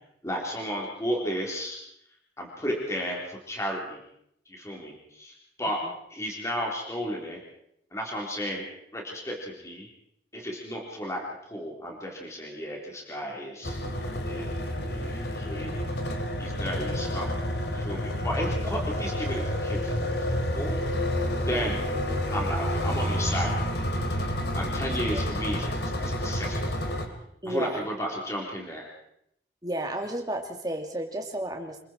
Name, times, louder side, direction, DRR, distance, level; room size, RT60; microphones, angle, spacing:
voice 1, 0.2-1.8 2.4-4.0 4.5-5.8 6.1-7.4 7.9-8.6 8.9-9.9 10.3-15.9 16.4-17.3 17.7-20.8 21.5-21.8 22.3-23.7 24.5-26.8 27.5-28.9, equal, 15° left, -1 dB, 3.8 m, -34 dB
sound 1, 13.6-27.1, equal, 65° left, 2.9 m, -29 dB
voice 2, 21.5-21.8 27.4-27.9 29.6-31.8, right 1 dB, 20° right, 3 dB, 2.5 m, -32 dB
26.5 x 22.0 x 4.5 m, 0.74 s
head